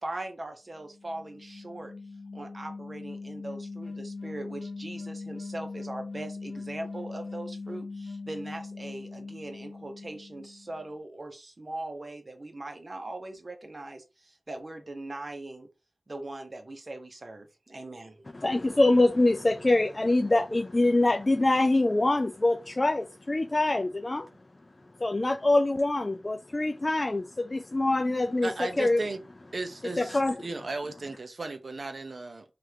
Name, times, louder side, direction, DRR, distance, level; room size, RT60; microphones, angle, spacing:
voice 1, 0.0-1.9 2.3-15.7 16.1-18.2, right 2 dB, 45° right, 0.9 m, -40 dB
sound 1, 0.8-10.9, left 3 dB, 60° left, 0.8 m, -41 dB
voice 2, 18.3-24.3 25.0-29.1 30.0-30.4, left 2 dB, 35° left, 0.3 m, -24 dB
voice 3, 28.4-29.2 29.5-32.4, right 3 dB, 65° right, 0.5 m, -36 dB
3.1 x 2.5 x 4.4 m
wide cardioid pair, 55°, 0 cm